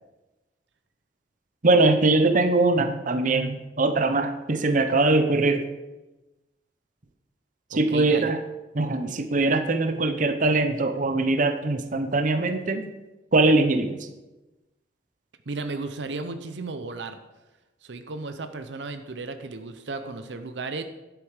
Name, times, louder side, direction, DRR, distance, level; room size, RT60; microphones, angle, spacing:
voice 1, 1.6-5.6 7.7-8.4 8.7-12.8 13.3-14.0, right 2 dB, 50° right, 8 dB, 0.8 m, -22 dB
voice 2, 7.7-8.3 15.5-17.2 17.8-20.8, right 3 dB, 80° right, 9 dB, 0.8 m, -34 dB
10.5 x 8.3 x 5.0 m, 1.0 s
head